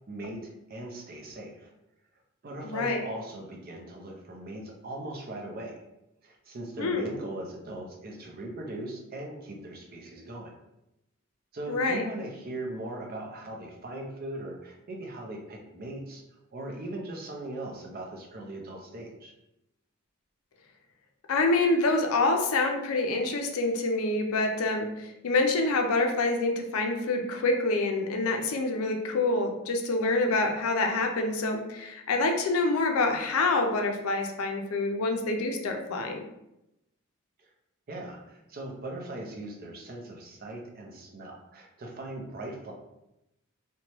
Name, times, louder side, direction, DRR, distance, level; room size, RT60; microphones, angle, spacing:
voice 1, 0.1-1.7 2.4-5.8 6.2-10.5 11.5-16.2 16.5-19.3 37.4-37.5 37.9-42.7, right 1 dB, 45° right, 1 dB, 0.5 m, -39 dB
voice 2, 2.6-3.1 6.8-7.0 11.7-12.0 21.3-36.2, left 2 dB, 75° left, 3 dB, 0.4 m, -26 dB
2.9 x 2.2 x 2.9 m, 0.88 s
head